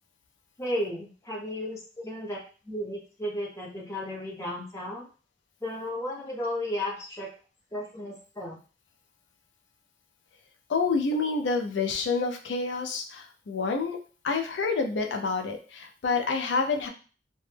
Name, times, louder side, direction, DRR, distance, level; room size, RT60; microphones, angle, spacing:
voice 1, 0.6-1.8 2.0-2.4 2.7-5.0 5.6-7.3 7.7-8.6, left 1 dB, 15° left, -4 dB, 0.7 m, -34 dB
voice 2, 10.7-14.0 14.2-16.9, left 4 dB, 80° left, 4 dB, 0.4 m, -28 dB
2.1 x 2.0 x 3.2 m, 0.37 s
head